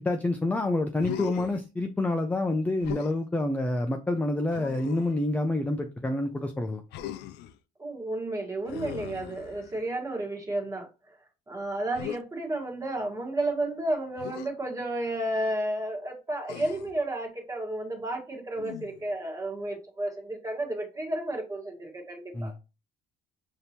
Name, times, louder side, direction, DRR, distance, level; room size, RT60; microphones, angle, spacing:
voice 1, 0.0-6.8 22.3-22.5, left 2 dB, 10° left, 0.4 m, -28 dB
Human voice, 1.0-1.6 2.8-3.2 4.5-5.2 6.9-7.6 8.7-9.9 11.9-12.2 14.2-14.5 16.5-17.0 18.6-19.1, left 11 dB, 80° left, 0.4 m, -39 dB
voice 2, 7.8-10.9 11.5-22.5, right 1 dB, 20° right, 1.4 m, -32 dB
5.1 x 2.8 x 2.9 m
cardioid pair, 110°, 17 cm